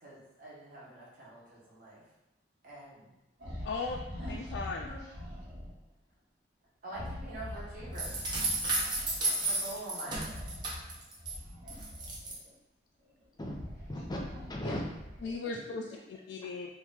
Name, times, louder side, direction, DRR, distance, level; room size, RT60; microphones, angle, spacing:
voice 1, 0.0-2.0 2.6-3.1 4.2-4.3 4.9-5.0 6.8-8.2 9.2-10.3, right 1 dB, 50° right, -6 dB, 1.1 m, -45 dB
sound 1, 3.4-5.7 6.9-9.2 10.2-12.5 13.1-15.5, left 1 dB, 85° right, 1.3 m, -43 dB
voice 2, 3.6-4.0 4.3-4.9 14.6-14.7 15.2-15.8 16.3-16.7, left 4 dB, 80° left, 0 dB, 0.3 m, -37 dB
sound 2, 8.0-11.3 11.7-12.4, right 2 dB, 25° right, 0.8 m, -33 dB
voice 3, 13.4-14.8 15.2-16.2, left 1 dB, 25° left, -1 dB, 0.6 m, -40 dB
3.1 x 2.6 x 3.6 m, 0.99 s
head